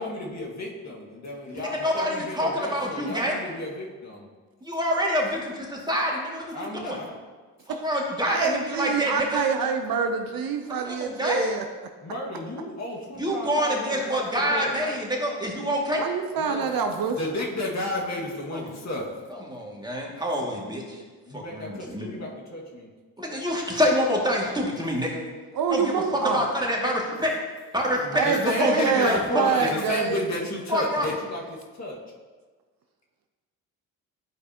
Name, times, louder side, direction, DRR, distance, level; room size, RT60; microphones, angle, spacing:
voice 1, 0.0-4.3 6.5-7.1 12.0-14.8 16.4-16.9 17.2-19.1 21.2-22.9 28.0-32.0, left 1 dB, 40° left, -2 dB, 1.8 m, -32 dB
voice 2, 1.5-3.3 4.6-7.0 7.7-9.4 10.8-11.5 13.2-16.0 18.5-18.7 19.3-21.0 21.3-22.2 23.2-25.2 25.7-27.3 27.7-29.2 30.7-31.1, equal, 10° right, -2 dB, 2.1 m, -26 dB
voice 3, 8.3-11.6 16.0-17.2 25.5-26.4 28.1-30.2, right 6 dB, 55° right, 6 dB, 0.7 m, -26 dB
11.5 x 4.8 x 2.9 m, 1.4 s
hypercardioid pair, 50°, 41 cm